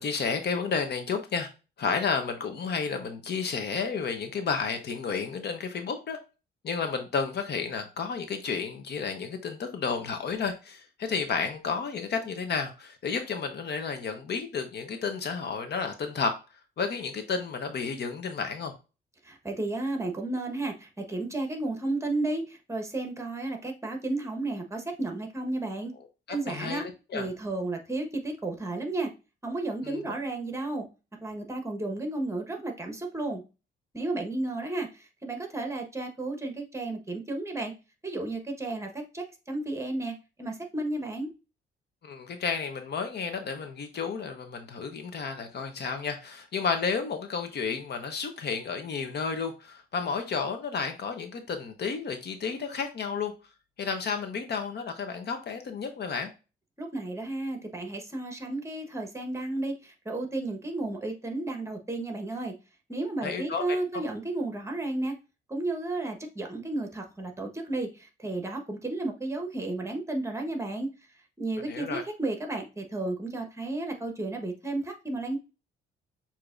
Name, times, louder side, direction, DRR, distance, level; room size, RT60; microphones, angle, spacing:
voice 1, 0.0-1.5 1.8-6.2 6.6-16.4 16.8-18.7 26.0-26.1 26.5-26.8 27.1-27.3 29.8-30.0 42.0-53.3 53.8-56.3 63.2-64.0 71.6-72.0, left 5 dB, 55° left, 6 dB, 1.0 m, -32 dB
voice 2, 19.2-25.9 26.3-26.9 27.1-29.1 29.4-30.9 31.2-33.4 33.9-37.7 38.0-41.3 56.8-62.5 62.9-65.1 65.5-70.9 71.4-75.4, right 2 dB, 15° right, 4 dB, 1.2 m, -33 dB
6.7 x 2.9 x 2.6 m, 0.30 s
cardioid pair, 90°, 20 cm